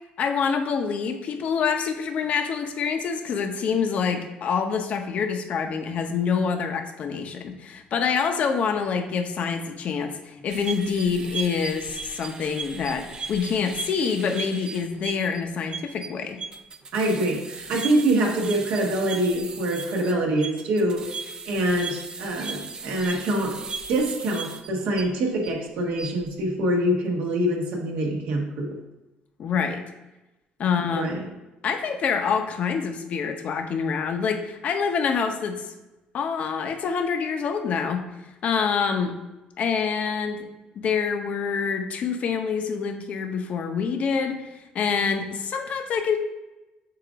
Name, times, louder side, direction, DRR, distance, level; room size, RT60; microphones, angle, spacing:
voice 1, 0.2-16.4 29.4-29.9 30.6-31.1 31.6-35.7 36.1-38.0 38.4-39.1 39.6-40.5 40.8-44.4 44.7-46.2, left 6 dB, 45° left, 5 dB, 0.7 m, -26 dB
sound 1, 10.5-25.5 25.9-26.3, right 5 dB, 25° right, 0.5 m, -37 dB
voice 2, 16.9-21.0 21.4-23.6 23.9-28.8 30.9-31.2, right 1 dB, 70° right, 0 dB, 1.4 m, -25 dB
7.6 x 2.6 x 5.0 m, 1.0 s
cardioid pair, 145°, 3 cm